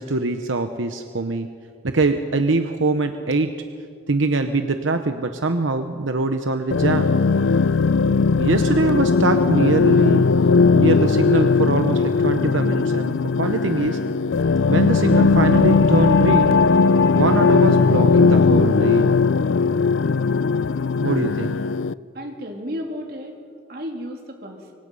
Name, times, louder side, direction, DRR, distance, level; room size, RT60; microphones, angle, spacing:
voice 1, 0.0-1.5 1.8-3.5 4.1-7.1 8.4-10.2 10.7-14.0 14.7-16.5 17.1-19.2 21.0-21.6, right 3 dB, 85° right, 7 dB, 1.0 m, -23 dB
sound 1, 6.7-21.9, left 4 dB, 85° left, 0.5 m, -18 dB
voice 2, 22.0-23.3 23.7-24.7, equal, 50° right, 1 dB, 3.3 m, -33 dB
25.0 x 24.5 x 5.6 m, 2.2 s
head